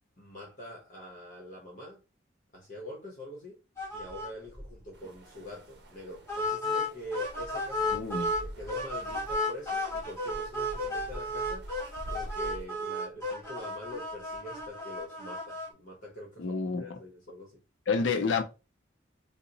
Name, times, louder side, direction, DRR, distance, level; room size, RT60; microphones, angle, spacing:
voice 1, 0.2-2.0 2.5-3.6 3.9-11.7 12.1-17.6, equal, 45° left, 0.9 m, -44 dB
sound 1, 3.8-4.3 4.6-4.7 5.0-5.1 6.3-8.4 8.7-15.7, left 1 dB, 15° left, 1.1 m, -33 dB
sound 2, 4.9-12.6, equal, 60° right, 0.7 m, -46 dB
voice 2, 7.9-8.3 16.4-17.0 17.9-18.4, left 5 dB, 80° left, 0.5 m, -29 dB
2.8 x 2.1 x 3.9 m
head